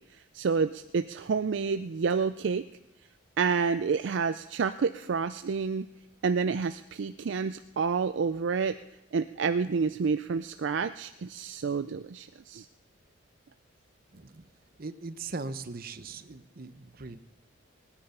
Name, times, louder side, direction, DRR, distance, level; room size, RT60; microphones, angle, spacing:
voice 1, 0.1-2.7 3.4-5.9 6.2-8.8 9.1-12.7, right 5 dB, 65° right, 11 dB, 0.4 m, -29 dB
voice 2, 14.8-17.2, right 3 dB, 45° right, 11 dB, 0.8 m, -39 dB
18.5 x 9.9 x 5.6 m, 0.94 s
head